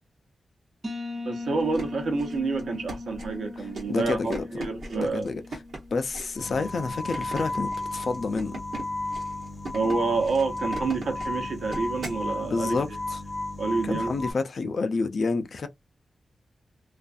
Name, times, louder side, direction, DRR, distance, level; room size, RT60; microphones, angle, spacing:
sound 1, 0.8-6.4, left 2 dB, 30° right, 0.6 m, -39 dB
voice 1, 1.2-5.3 9.7-12.8 13.6-14.1, right 4 dB, 85° right, 0.9 m, -28 dB
sound 2, 1.5-12.3, right 2 dB, 65° right, 1.2 m, -40 dB
voice 2, 3.9-4.7 5.0-5.4 5.9-8.5 12.5-13.2 13.8-15.7, left 4 dB, 60° left, 0.4 m, -29 dB
sound 3, 6.4-14.3, left 2 dB, 25° left, 0.7 m, -33 dB
2.5 x 2.3 x 2.4 m
wide cardioid pair, 115°, 0 cm